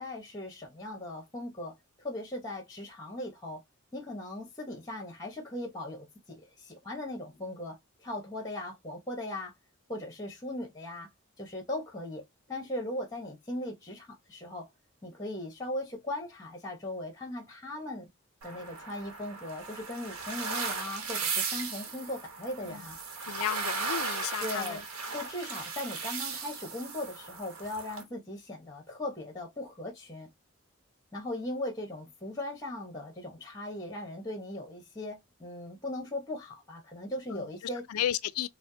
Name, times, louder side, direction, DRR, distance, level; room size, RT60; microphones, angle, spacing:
voice 1, 0.0-3.6 3.9-9.5 9.9-11.1 11.4-12.2 12.5-14.7 15.0-18.1 18.4-23.0 24.4-24.8 25.1-30.3 31.1-37.9, left 1 dB, 15° left, 0.9 m, -38 dB
sound 1, 18.4-28.0, right 4 dB, 80° right, 0.9 m, -36 dB
voice 2, 23.3-24.8 37.3-37.4 37.9-38.5, left 11 dB, 85° left, 0.3 m, -33 dB
4.2 x 2.1 x 2.6 m
head